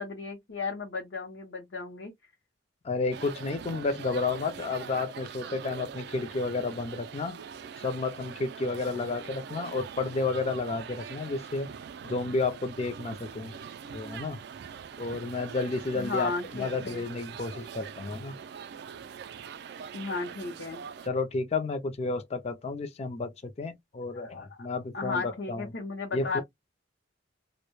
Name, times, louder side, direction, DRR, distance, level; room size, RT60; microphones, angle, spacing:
voice 1, 0.0-2.1 15.9-17.1 19.9-20.8 24.1-24.7 24.9-26.4, left 4 dB, 70° left, 0.6 m, -35 dB
voice 2, 2.8-7.4 7.8-11.7 12.0-13.6 13.9-14.4 15.0-18.4 21.0-25.7 26.1-26.4, left 3 dB, 35° left, 0.4 m, -31 dB
sound 1, 3.1-21.1, right 7 dB, 60° right, 0.3 m, -43 dB
2.1 x 2.1 x 2.9 m
head